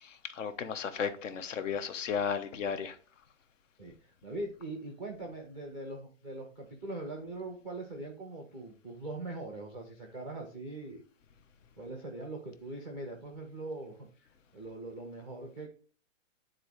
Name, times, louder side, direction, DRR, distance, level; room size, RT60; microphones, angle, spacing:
voice 1, 0.0-3.0, left 6 dB, 70° left, 1.3 m, -34 dB
voice 2, 3.8-11.0 11.8-14.1 14.5-15.7, right 2 dB, 5° left, 0.4 m, -41 dB
9.6 x 3.9 x 4.7 m
hypercardioid pair, 170°, 39 cm